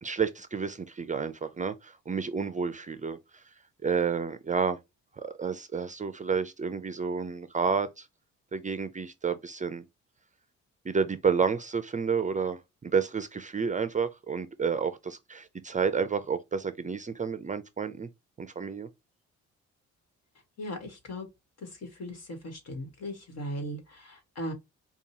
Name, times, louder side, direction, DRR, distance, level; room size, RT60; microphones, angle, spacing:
voice 1, 0.0-3.4 3.8-4.8 5.2-8.1 8.5-9.8 10.8-18.1 18.4-18.9, right 5 dB, 25° right, 0.5 m, -30 dB
voice 2, 20.6-21.3 21.6-24.5, equal, 55° left, 1.8 m, -38 dB
5.1 x 2.4 x 2.8 m
cardioid pair, 90°, 30 cm